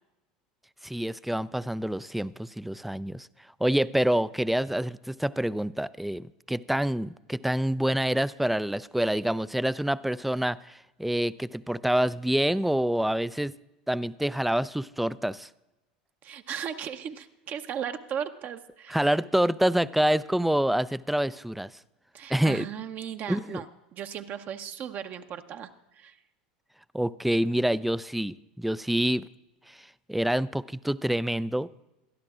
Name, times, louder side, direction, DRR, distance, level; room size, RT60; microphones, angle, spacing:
voice 1, 0.8-3.3 3.6-13.5 13.9-15.5 18.9-21.7 22.3-22.7 23.3-23.6 26.9-29.3 30.1-31.7, right 1 dB, 5° right, 18 dB, 0.3 m, -27 dB
voice 2, 16.2-19.1 22.1-23.7 23.9-26.2, right 8 dB, 40° right, 7 dB, 0.8 m, -36 dB
22.0 x 12.0 x 2.4 m, 0.98 s
hypercardioid pair, 85°, 5 cm